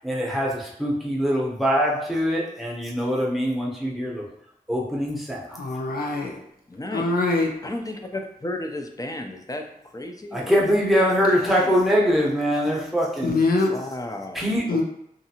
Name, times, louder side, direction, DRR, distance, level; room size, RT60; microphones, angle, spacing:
voice 1, 0.0-4.2 4.7-5.6 10.3-13.4 14.3-14.6, equal, ahead, 0.8 m, -23 dB
voice 2, 5.6-6.4 6.9-7.5 13.2-13.7 14.7-14.8, left 3 dB, 80° left, 0.5 m, -23 dB
voice 3, 6.7-7.1 7.6-9.7 9.9-10.7 13.7-14.8, left 1 dB, 25° left, 0.4 m, -33 dB
2.7 x 2.5 x 2.7 m
wide cardioid pair, 50°, 15 cm